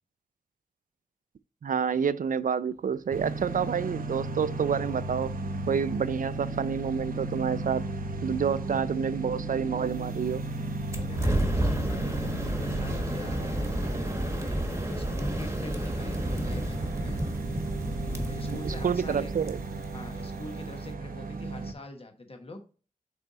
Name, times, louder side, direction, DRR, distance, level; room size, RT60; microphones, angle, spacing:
voice 1, 1.6-5.4 5.7-7.9 8.2-10.4 18.5-19.6, right 7 dB, 75° right, 0.4 m, -28 dB
sound 1, 3.1-21.7, right 2 dB, 90° right, 0.8 m, -35 dB
sound 2, 10.9-20.9, right 1 dB, 20° right, 1.3 m, -31 dB
voice 2, 11.0-13.6 14.1-17.2 18.1-19.3 19.9-22.6, left 2 dB, 40° left, 1.2 m, -44 dB
6.9 x 4.0 x 4.1 m
wide cardioid pair, 75°, 14 cm